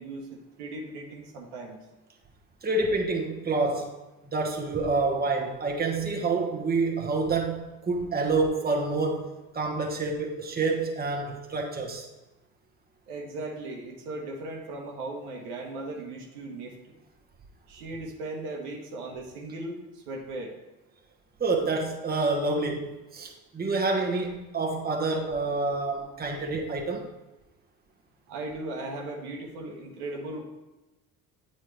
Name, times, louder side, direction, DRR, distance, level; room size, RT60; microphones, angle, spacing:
voice 1, 0.0-1.8 13.1-16.9 17.7-20.5 28.3-30.4, right 2 dB, 75° right, 0 dB, 1.2 m, -37 dB
voice 2, 2.6-3.9 4.2-9.3 9.5-12.1 21.4-27.1, right 3 dB, 20° right, 1 dB, 1.2 m, -28 dB
8.7 x 4.3 x 3.2 m, 1.0 s
hypercardioid pair, 60°, 45 cm